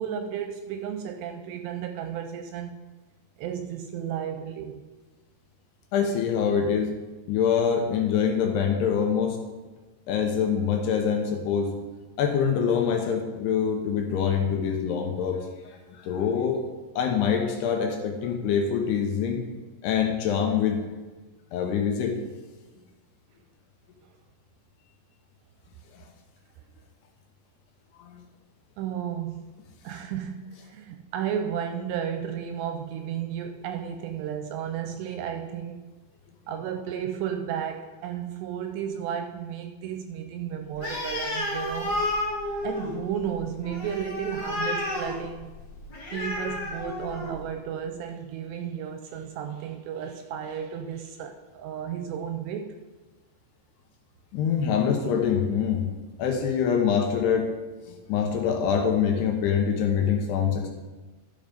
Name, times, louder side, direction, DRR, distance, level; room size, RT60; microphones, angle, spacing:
voice 1, 0.0-2.8 3.4-4.8 28.8-29.5 29.8-35.9 36.5-42.0 42.6-45.5 46.0-52.7, right 8 dB, 80° right, 6 dB, 2.5 m, -33 dB
voice 2, 5.9-6.9 7.3-9.4 10.1-11.7 12.2-15.4 16.0-16.6 17.0-19.4 19.8-20.9 21.5-22.2 25.9-26.0 28.0-28.2 54.3-55.9 56.2-57.5 57.8-60.7, left 7 dB, 75° left, 3 dB, 2.7 m, -25 dB
Animal, 40.7-47.5, left 1 dB, 35° left, 2.0 m, -31 dB
13.0 x 5.4 x 5.2 m, 1.2 s
omnidirectional pair, 5.2 m